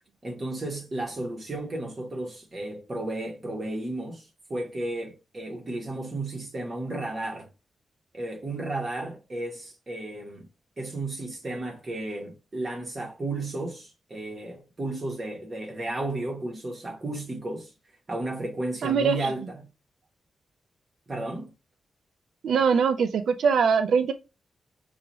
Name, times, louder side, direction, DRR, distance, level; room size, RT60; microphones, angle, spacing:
voice 1, 0.2-7.5 8.1-10.5 10.8-17.7 18.1-19.6 21.1-21.5, right 2 dB, 25° right, 1.2 m, -33 dB
voice 2, 18.8-19.3 22.4-24.1, right 6 dB, 75° right, 0.3 m, -22 dB
5.7 x 2.4 x 2.9 m
wide cardioid pair, 145°, 0 cm